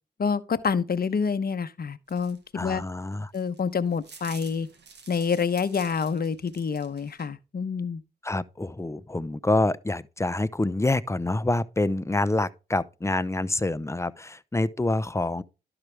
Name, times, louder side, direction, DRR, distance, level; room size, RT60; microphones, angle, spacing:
voice 1, 0.2-2.8 3.3-4.7 5.1-8.0, left 6 dB, 55° left, 0.9 m, -27 dB
sound 1, 2.1-7.3, right 5 dB, 70° right, 1.5 m, -49 dB
voice 2, 2.5-3.3 8.2-15.4, left 2 dB, 15° left, 0.7 m, -27 dB
12.0 x 4.9 x 3.3 m
supercardioid pair, 45°, 18 cm